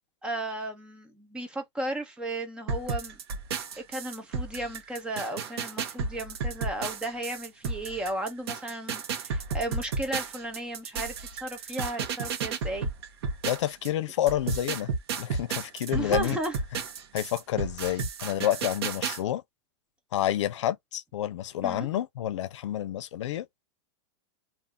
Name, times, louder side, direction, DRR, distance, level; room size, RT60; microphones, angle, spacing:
voice 1, 0.2-3.2 3.8-12.9 15.9-16.5 21.6-21.9, right 1 dB, 5° right, 0.4 m, -34 dB
sound 1, 2.7-13.9 14.3-19.2, right 5 dB, 60° right, 0.9 m, -33 dB
voice 2, 13.4-14.9 15.2-16.4 17.1-19.4 20.1-23.5, left 12 dB, 90° left, 0.5 m, -29 dB
2.6 x 2.4 x 3.5 m
supercardioid pair, 175°, 15 cm